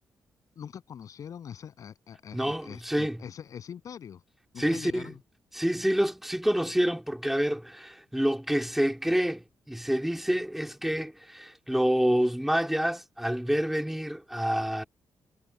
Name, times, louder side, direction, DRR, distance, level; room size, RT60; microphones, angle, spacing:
voice 1, 0.6-4.2 4.5-5.2, left 8 dB, 65° left, 7.8 m, -43 dB
voice 2, 2.3-3.2 4.6-5.1 5.5-14.8, equal, 5° right, 2.8 m, -27 dB
cardioid pair, 80°, 6 cm